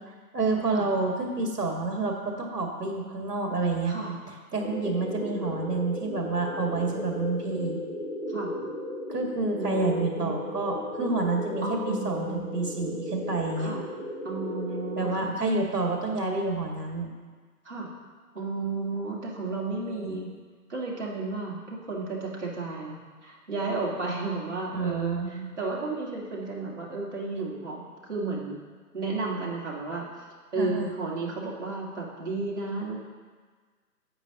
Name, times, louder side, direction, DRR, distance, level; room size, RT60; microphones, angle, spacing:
voice 1, 0.3-4.0 4.5-7.8 9.1-13.8 15.0-17.1 19.9-20.2 24.7-25.5 30.6-30.9, right 3 dB, 70° right, 1 dB, 1.9 m, -29 dB
voice 2, 3.9-4.2 8.3-8.5 9.5-10.4 11.6-12.5 13.6-13.8 14.2-15.4 17.6-17.9 18.3-20.3 20.7-28.6 28.9-30.1 30.5-33.0, right 3 dB, 45° right, -4 dB, 2.0 m, -33 dB
sound 1, 4.6-15.1, left 1 dB, 25° left, 1.7 m, -35 dB
9.7 x 8.0 x 2.9 m, 1.5 s
hypercardioid pair, 175°, 49 cm